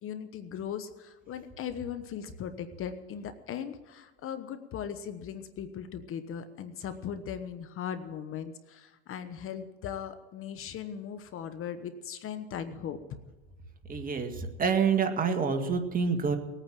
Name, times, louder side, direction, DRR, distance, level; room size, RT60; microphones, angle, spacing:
voice 1, 0.0-13.0, left 8 dB, 35° left, 10 dB, 1.1 m, -38 dB
voice 2, 13.9-16.4, right 5 dB, 25° right, 5 dB, 1.9 m, -27 dB
19.5 x 9.1 x 7.6 m, 1.2 s
supercardioid pair, 120°, 35 cm